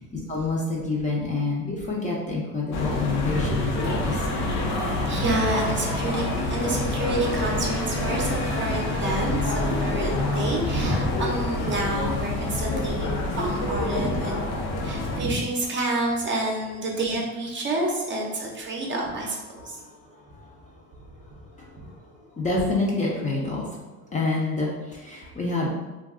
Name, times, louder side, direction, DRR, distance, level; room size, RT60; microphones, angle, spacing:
voice 1, 0.3-4.5 19.6-25.7, left 3 dB, 20° left, -3 dB, 0.5 m, -29 dB
sound 1, 2.7-15.2, left 2 dB, 80° left, 0.7 m, -27 dB
voice 2, 4.1-4.5 4.9-6.2 6.5-14.3 14.8-19.8 21.8-21.9, right 2 dB, 35° right, -1 dB, 0.6 m, -28 dB
2.3 x 2.2 x 3.6 m, 1.1 s
cardioid pair, 115°, 36 cm